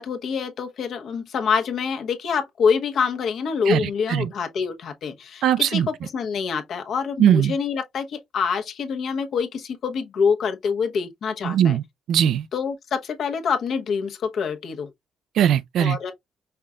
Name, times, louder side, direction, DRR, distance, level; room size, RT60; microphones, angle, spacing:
voice 1, 0.0-5.4 5.7-11.8 12.5-14.9 15.8-16.1, left 6 dB, 65° left, 1.0 m, -26 dB
voice 2, 3.7-4.3 5.4-5.9 7.2-7.5 11.4-12.5 15.3-16.0, right 10 dB, 75° right, 0.3 m, -20 dB
5.6 x 3.7 x 2.2 m
cardioid pair, 90°, 0 cm